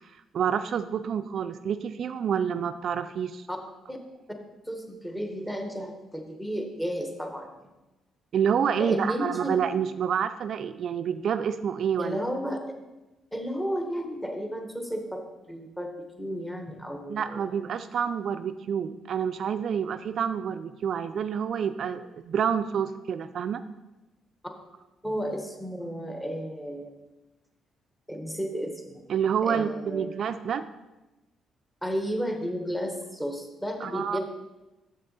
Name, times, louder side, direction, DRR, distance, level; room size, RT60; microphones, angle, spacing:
voice 1, 0.3-3.4 8.3-12.2 17.1-23.6 29.1-30.6 33.8-34.2, right 7 dB, 60° right, 11 dB, 0.3 m, -28 dB
voice 2, 4.7-7.7 8.8-9.5 12.0-12.6 13.3-15.9 16.2-17.6 25.0-27.0 28.1-29.0 29.5-30.1 31.8-34.2, equal, 10° left, 3 dB, 1.2 m, -33 dB
6.5 x 6.5 x 4.1 m, 1.0 s
cardioid pair, 90°, 0 cm